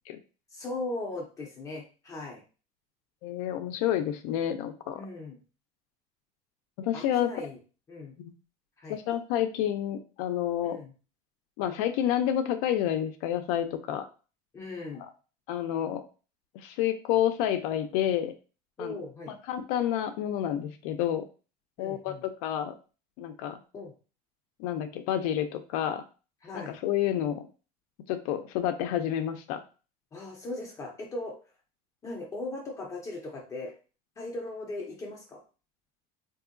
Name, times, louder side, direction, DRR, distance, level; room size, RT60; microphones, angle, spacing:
voice 1, 0.5-2.4 4.9-5.4 6.9-7.6 7.9-8.1 8.8-9.0 10.7-10.9 14.5-15.0 18.8-19.4 21.8-22.2 23.7-23.9 26.4-26.8 30.1-31.3 32.0-33.7 34.2-35.4, left 2 dB, 15° left, -1 dB, 0.5 m, -38 dB
voice 2, 3.2-5.0 6.8-7.3 8.9-10.8 11.6-14.1 15.0-15.1 15.5-16.0 16.5-18.3 18.8-19.0 19.3-21.2 21.8-22.7 23.2-23.6 24.6-26.0 26.5-27.4 28.1-29.6, left 11 dB, 80° left, 7 dB, 0.4 m, -29 dB
3.7 x 2.6 x 2.5 m, 0.35 s
cardioid pair, 170°, 19 cm